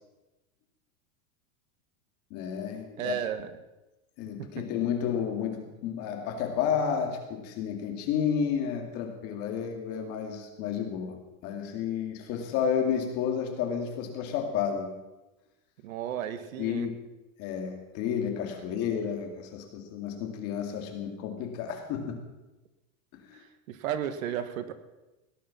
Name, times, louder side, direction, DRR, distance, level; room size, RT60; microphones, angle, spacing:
voice 1, 2.3-3.1 4.2-14.9 16.6-16.9 17.4-22.2 23.1-23.4, left 7 dB, 35° left, 4 dB, 2.3 m, -31 dB
voice 2, 3.0-3.5 4.4-4.6 15.8-16.9 23.7-24.7, right 10 dB, 70° right, 11 dB, 1.5 m, -33 dB
17.0 x 10.5 x 5.8 m, 1.0 s
supercardioid pair, 170°, 43 cm